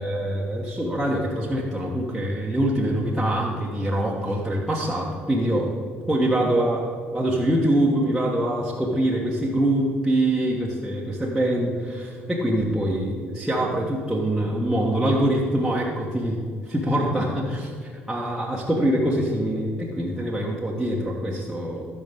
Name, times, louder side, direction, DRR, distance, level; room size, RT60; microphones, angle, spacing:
voice 1, 0.0-5.7 6.1-6.9 7.1-21.9, right 1 dB, 5° right, -5 dB, 1.4 m, -24 dB
16.0 x 6.7 x 3.6 m, 2.2 s
figure-of-eight pair, 55°, 6 cm